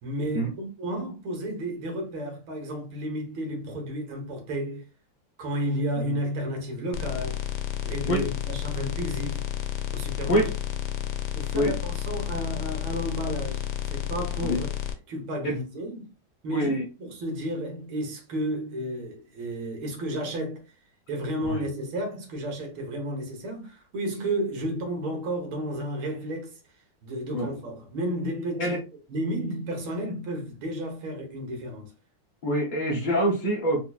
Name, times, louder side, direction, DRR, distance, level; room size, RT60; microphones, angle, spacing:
voice 1, 0.0-4.9 5.4-7.4 7.8-9.5 9.9-10.5 11.4-14.7 15.1-16.1 16.4-20.6 21.1-26.6 27.0-28.8 29.1-31.9, right 1 dB, 80° right, 2.0 m, -32 dB
sound 1, 6.9-14.9, left 12 dB, 70° left, 1.1 m, -31 dB
voice 2, 16.5-16.8 27.3-27.5 28.6-28.8 32.4-33.8, equal, 90° left, 0.4 m, -25 dB
4.6 x 2.7 x 2.3 m
omnidirectional pair, 2.3 m